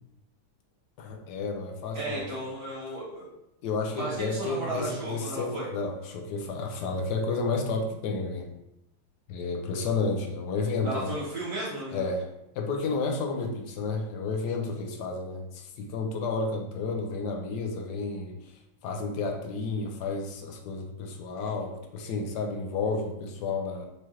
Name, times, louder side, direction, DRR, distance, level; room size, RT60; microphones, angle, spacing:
voice 1, 1.0-2.3 3.6-8.5 9.3-11.1 11.9-12.3 12.6-23.9, left 3 dB, 70° left, 2 dB, 1.0 m, -31 dB
voice 2, 1.9-3.3 3.9-5.7 10.8-12.0, right 1 dB, 45° right, -10 dB, 1.4 m, -34 dB
4.7 x 3.0 x 2.9 m, 0.84 s
omnidirectional pair, 2.2 m